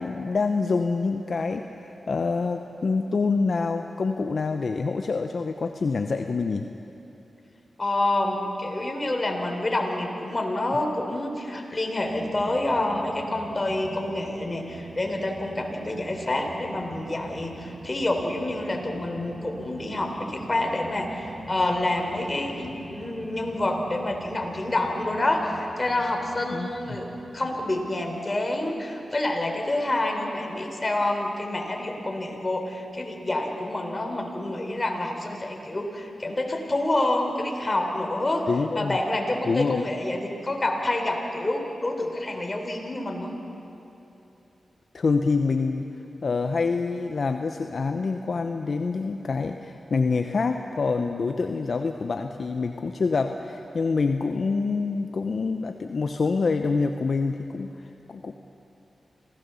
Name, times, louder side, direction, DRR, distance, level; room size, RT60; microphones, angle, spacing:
voice 1, 0.0-6.7 26.5-26.7 38.5-39.0 39.4-39.9 44.9-45.9 46.2-58.3, left 4 dB, 65° left, 6 dB, 0.8 m, -26 dB
voice 2, 7.8-27.1 27.3-43.3, left 2 dB, 35° left, 3 dB, 4.0 m, -28 dB
sound 1, 12.0-27.7, right 3 dB, 85° right, 2.7 m, -43 dB
27.0 x 17.0 x 7.1 m, 2.9 s
cardioid pair, 45°, 0 cm